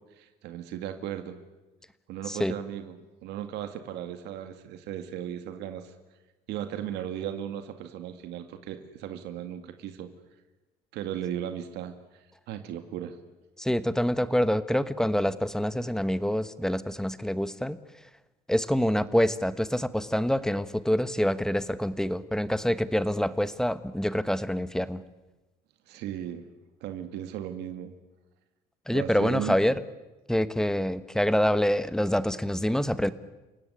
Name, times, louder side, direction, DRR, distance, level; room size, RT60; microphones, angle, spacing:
voice 1, 0.2-1.4 2.1-5.9 6.5-10.1 10.9-13.2 25.9-26.5 26.8-27.9 28.9-29.6, right 10 dB, 85° right, 7 dB, 2.2 m, -36 dB
voice 2, 13.6-17.8 18.5-25.0 28.9-29.8 30.3-33.1, equal, 5° left, 13 dB, 1.2 m, -26 dB
30.0 x 17.5 x 9.9 m, 1.1 s
cardioid pair, 110°, 17 cm